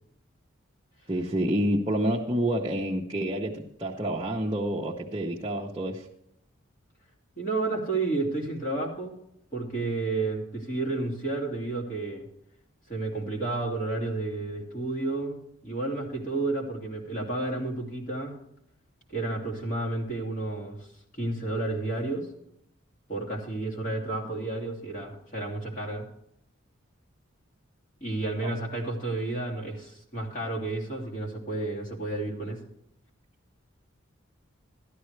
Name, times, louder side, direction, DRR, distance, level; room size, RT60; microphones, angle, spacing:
voice 1, 1.1-6.1 28.4-28.5, right 1 dB, 20° right, -3 dB, 0.9 m, -28 dB
voice 2, 7.4-9.1 9.5-12.3 12.9-18.4 19.1-20.8 21.2-22.3 23.1-26.1 28.0-32.6, right 2 dB, 40° left, -1 dB, 2.5 m, -31 dB
13.0 x 11.5 x 3.3 m, 0.76 s
head